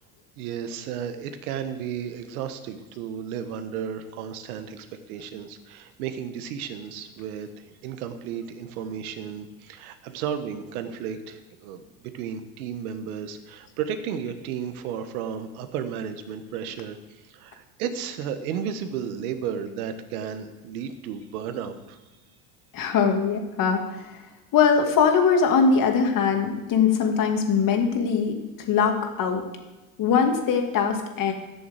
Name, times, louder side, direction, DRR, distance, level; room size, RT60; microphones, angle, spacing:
voice 1, 0.4-22.0, right 8 dB, 90° right, 8 dB, 1.3 m, -33 dB
voice 2, 22.7-24.2 24.5-28.4 28.7-29.4 30.0-31.3, left 6 dB, 50° left, 3 dB, 2.5 m, -21 dB
12.5 x 7.1 x 8.0 m, 1.1 s
supercardioid pair, 110°, 42 cm